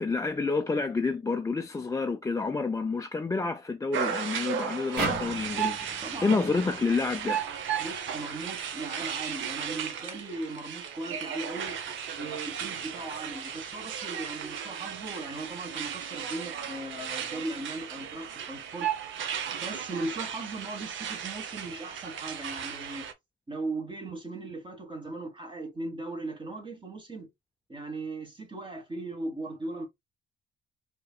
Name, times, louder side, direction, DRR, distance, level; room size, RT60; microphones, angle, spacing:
voice 1, 0.0-7.4, left 4 dB, 15° left, 0.4 m, -29 dB
sound 1, 3.9-23.1, right 8 dB, 75° right, 0.7 m, -35 dB
sound 2, 5.0-8.2, right 2 dB, 55° right, 2.0 m, -37 dB
voice 2, 5.9-6.7 7.8-19.2 19.6-23.1 23.5-27.3 27.7-29.9, right 2 dB, 25° right, 1.5 m, -38 dB
4.7 x 2.9 x 2.2 m
cardioid pair, 90°, 20 cm